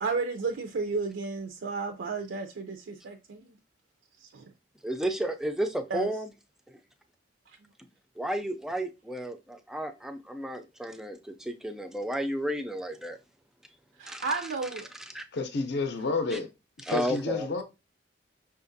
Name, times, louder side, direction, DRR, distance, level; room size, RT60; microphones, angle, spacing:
voice 1, 0.0-3.5 4.2-4.4 5.9-6.1 14.0-14.9, right 4 dB, 85° right, 0.4 m, -32 dB
voice 2, 4.8-6.3 6.7-6.8 8.2-13.2 14.1-14.4 14.9-15.2 16.3-16.4 16.8-17.5, right 1 dB, 5° right, 0.3 m, -32 dB
voice 3, 15.3-16.5 16.8-17.6, left 3 dB, 65° left, 0.6 m, -30 dB
5.6 x 2.5 x 2.6 m
head